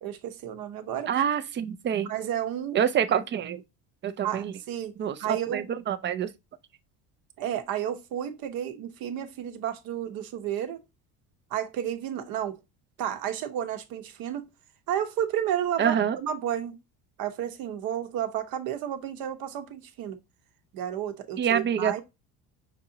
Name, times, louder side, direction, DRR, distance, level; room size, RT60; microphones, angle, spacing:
voice 1, 0.0-1.1 2.0-2.8 4.2-5.7 7.4-10.8 11.5-12.6 13.0-14.5 14.9-16.8 17.2-20.2 20.7-22.0, right 10 dB, 70° right, 0.9 m, -32 dB
voice 2, 1.1-2.1 2.7-3.6 4.0-4.5 5.0-6.3 15.8-16.2 21.4-21.9, right 8 dB, 30° right, 0.4 m, -26 dB
6.0 x 2.8 x 2.6 m
cardioid pair, 125°, 37 cm